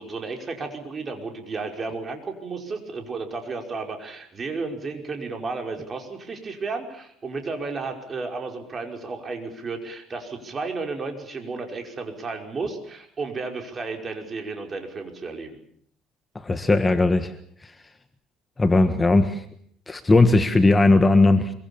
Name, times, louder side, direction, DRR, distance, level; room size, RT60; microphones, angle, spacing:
voice 1, 0.0-15.6, right 4 dB, 30° right, 4 dB, 5.3 m, -33 dB
voice 2, 16.3-17.3 18.6-19.4 19.9-21.5, left 2 dB, 15° left, 9 dB, 1.5 m, -18 dB
25.0 x 24.0 x 7.2 m, 0.62 s
cardioid pair, 120°, 0 cm